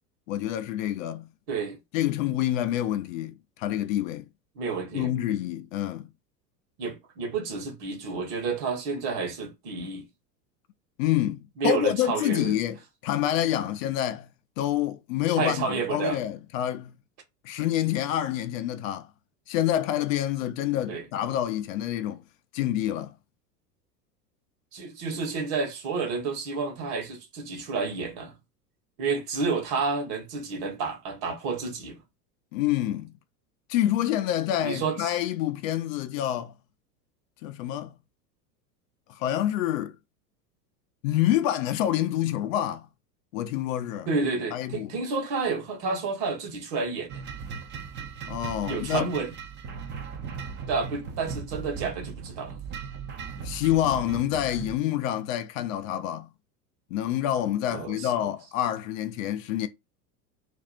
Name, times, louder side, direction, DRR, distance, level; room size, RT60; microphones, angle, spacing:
voice 1, 0.3-1.3 1.9-4.2 4.9-6.1 11.0-12.8 13.0-14.3 14.6-16.9 17.4-19.1 19.5-22.2 22.5-23.1 32.5-33.1 33.7-36.5 37.4-37.9 39.1-39.9 41.0-42.9 43.3-44.1 44.5-44.9 48.3-49.1 53.4-56.3 56.9-59.7, left 12 dB, 55° left, 0.6 m, -27 dB
voice 2, 1.5-1.8 4.6-5.1 6.8-10.0 11.6-12.6 15.4-16.2 20.9-21.0 24.7-28.3 29.0-32.0 34.6-35.1 44.1-47.2 48.7-49.3 50.7-52.6 57.7-58.1, right 4 dB, 45° right, 1.2 m, -30 dB
sound 1, 47.1-54.8, right 6 dB, 25° right, 0.5 m, -38 dB
2.6 x 2.4 x 4.1 m
hypercardioid pair, 85°, 50 cm